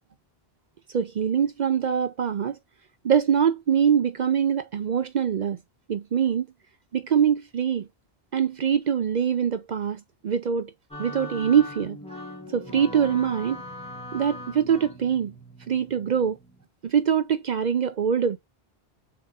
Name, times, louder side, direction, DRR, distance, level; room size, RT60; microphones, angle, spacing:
voice 1, 0.9-2.6 3.0-5.6 5.9-6.5 6.9-7.9 8.3-10.7 11.0-12.0 12.5-13.6 14.1-15.3 15.7-16.4 16.8-18.4, right 8 dB, 55° right, 0.5 m, -23 dB
sound 1, 10.9-16.6, left 1 dB, 5° left, 1.5 m, -40 dB
7.2 x 2.9 x 2.4 m
omnidirectional pair, 1.1 m